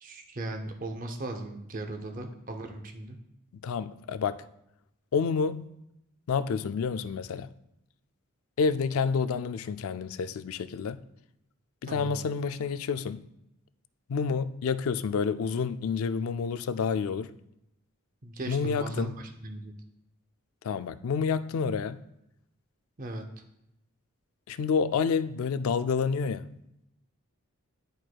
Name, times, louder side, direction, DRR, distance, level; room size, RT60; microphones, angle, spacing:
voice 1, 0.0-3.2 11.9-12.2 18.2-19.7 23.0-23.2, right 1 dB, 40° right, 0.6 m, -37 dB
voice 2, 3.6-4.4 5.1-5.7 6.3-7.5 8.6-11.0 11.8-13.3 14.1-17.3 18.5-19.1 20.6-22.0 24.5-26.5, left 5 dB, 80° left, 0.3 m, -29 dB
10.5 x 4.5 x 2.3 m
head